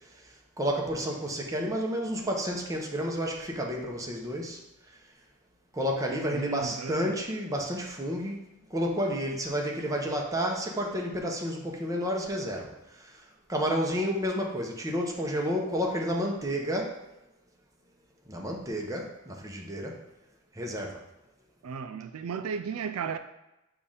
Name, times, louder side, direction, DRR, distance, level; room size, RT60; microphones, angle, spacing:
voice 1, 0.6-4.6 5.7-8.4 8.7-12.7 13.5-17.0 18.3-20.0 20.6-21.0, equal, 15° right, 0.8 m, -30 dB
voice 2, 6.3-7.2 21.6-23.2, right 5 dB, 85° right, 0.4 m, -35 dB
6.8 x 2.5 x 5.5 m
head